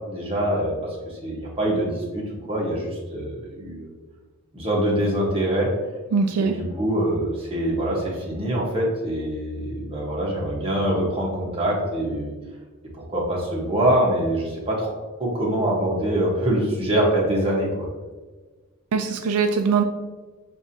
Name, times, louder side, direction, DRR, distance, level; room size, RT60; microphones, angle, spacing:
voice 1, 0.1-2.2 2.5-3.9 4.5-5.7 6.4-12.3 13.1-14.9 15.2-17.7, right 1 dB, 25° right, -4 dB, 1.2 m, -24 dB
voice 2, 6.1-6.5 18.9-19.8, right 5 dB, 90° right, 5 dB, 0.4 m, -21 dB
6.9 x 2.7 x 2.8 m, 1.3 s
head